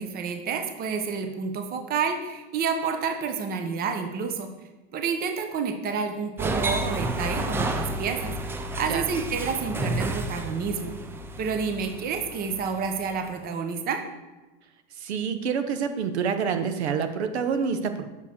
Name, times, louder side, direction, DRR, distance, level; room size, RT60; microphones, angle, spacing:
voice 1, 0.0-4.5 4.9-10.9 11.4-14.0, right 5 dB, 30° right, 6 dB, 0.9 m, -29 dB
sound 1, 6.4-13.2, right 1 dB, 10° right, 0.4 m, -31 dB
voice 2, 15.0-18.1, right 6 dB, 80° right, 8 dB, 1.0 m, -27 dB
6.8 x 4.8 x 5.1 m, 1.2 s
hypercardioid pair, 125°, 32 cm